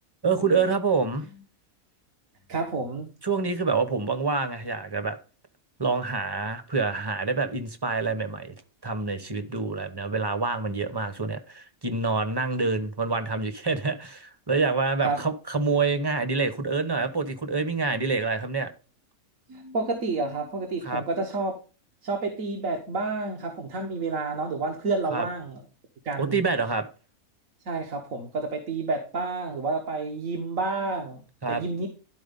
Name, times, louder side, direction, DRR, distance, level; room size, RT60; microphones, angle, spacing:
voice 1, 0.2-1.2 3.2-5.2 5.8-8.5 8.8-18.7 20.8-21.0 25.1-25.3 26.2-26.9 31.4-31.6, right 4 dB, 20° right, 0.8 m, -27 dB
voice 2, 2.5-3.1 15.0-15.2 19.5-21.6 22.0-25.6 26.0-26.4 27.7-31.2 31.5-31.9, right 3 dB, 70° right, 1.8 m, -29 dB
12.0 x 4.5 x 5.3 m
omnidirectional pair, 1.5 m